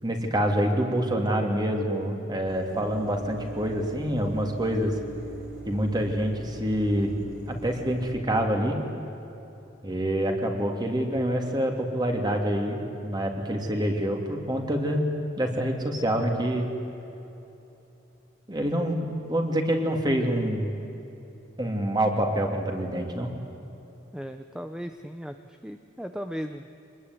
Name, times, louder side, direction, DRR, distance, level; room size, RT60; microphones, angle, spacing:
voice 1, 0.0-4.9 5.7-7.2 7.5-8.8 9.8-15.1 15.4-16.7 18.5-20.8 21.6-23.3, equal, 20° right, 2 dB, 3.2 m, -26 dB
sound 1, 2.5-8.2, right 2 dB, 55° right, 4.6 m, -42 dB
voice 2, 24.1-25.3 25.6-26.7, equal, 5° right, 7 dB, 0.8 m, -36 dB
26.0 x 20.5 x 9.9 m, 3.0 s
head